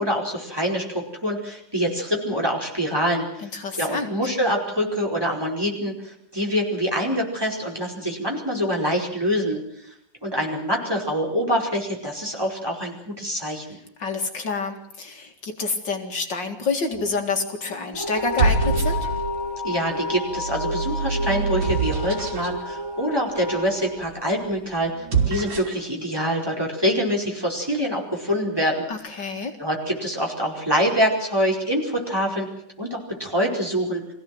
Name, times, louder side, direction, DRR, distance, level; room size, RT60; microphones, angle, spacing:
voice 1, 0.0-3.5 3.8-9.9 10.2-13.8 19.6-29.1 29.6-32.5 32.8-34.0, equal, 10° right, 0 dB, 5.0 m, -25 dB
voice 2, 3.4-4.2 14.0-19.0 28.9-29.6, left 4 dB, 65° left, 4 dB, 2.8 m, -28 dB
sound 1, 16.9-17.3 18.1-19.5 20.2-22.6 24.9-25.9, right 4 dB, 75° right, 3.8 m, -25 dB
sound 2, 17.9-24.8, left 2 dB, 10° left, 2.2 m, -31 dB
24.5 x 16.5 x 7.9 m, 0.74 s
omnidirectional pair, 2.1 m